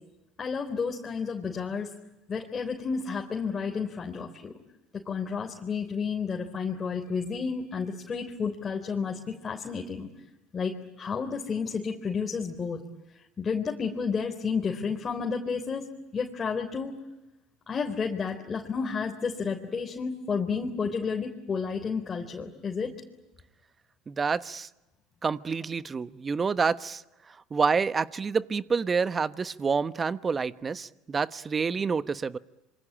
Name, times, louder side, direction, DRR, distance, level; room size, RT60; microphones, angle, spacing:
voice 1, 0.4-1.9 2.3-4.5 5.1-10.1 10.5-12.8 13.4-15.9 16.1-16.9 17.7-22.9, left 5 dB, 30° left, 2 dB, 3.9 m, -31 dB
voice 2, 24.1-24.7 25.2-27.0 27.5-32.4, right 5 dB, 30° right, 14 dB, 1.1 m, -28 dB
27.0 x 25.0 x 8.8 m, 1.0 s
hypercardioid pair, 80°, 0 cm